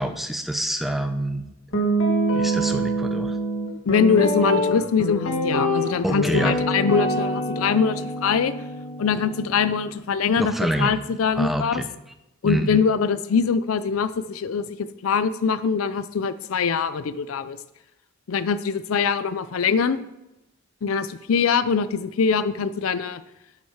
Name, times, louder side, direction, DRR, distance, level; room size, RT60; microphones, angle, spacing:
voice 1, 0.0-1.4 2.3-3.4 6.0-6.6 10.4-11.0 11.3-11.9 12.4-12.8, right 1 dB, ahead, 7 dB, 0.7 m, -26 dB
Guitar, 1.7-9.9, right 1 dB, 65° left, 1.9 m, -25 dB
voice 2, 3.9-8.5 9.0-10.5 10.8-11.8 12.4-17.6 18.3-20.0 20.8-23.2, left 6 dB, 90° left, 14 dB, 0.5 m, -23 dB
9.2 x 7.4 x 5.7 m, 0.93 s
head